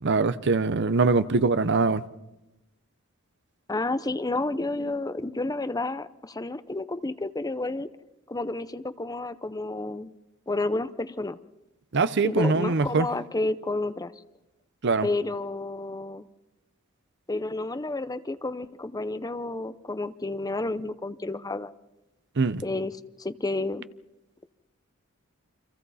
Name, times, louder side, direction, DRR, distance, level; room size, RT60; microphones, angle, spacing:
voice 1, 0.0-2.0 11.9-13.1 14.8-15.1 22.4-22.6, right 4 dB, 55° right, 0.7 m, -23 dB
voice 2, 3.7-7.9 8.3-10.1 10.5-11.4 12.2-14.1 15.0-16.3 17.3-21.7 22.6-22.9 23.2-23.9, left 2 dB, 20° left, 0.7 m, -30 dB
29.5 x 26.5 x 4.2 m
head